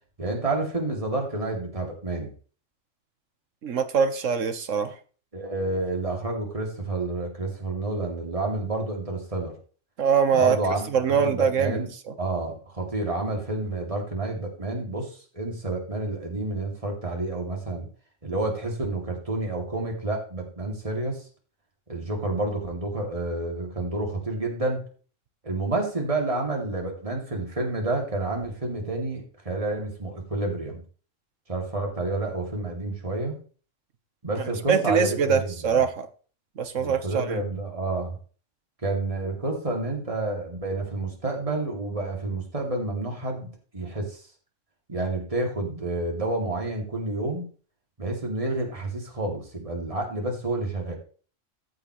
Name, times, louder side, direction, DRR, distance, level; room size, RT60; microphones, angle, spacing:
voice 1, 0.2-2.3 5.3-9.5 10.3-11.9 12.2-17.9 18.2-21.3 21.9-24.9 25.4-30.8 31.5-33.4 34.2-35.8 36.8-38.2 38.8-44.2 44.9-47.5 48.0-51.0, right 2 dB, 25° right, 2.6 m, -29 dB
voice 2, 3.6-4.9 10.0-10.6 10.9-11.8 12.1-12.2 34.7-36.1 36.6-37.4, right 6 dB, 80° right, 1.5 m, -23 dB
14.0 x 7.7 x 3.1 m
omnidirectional pair, 1.3 m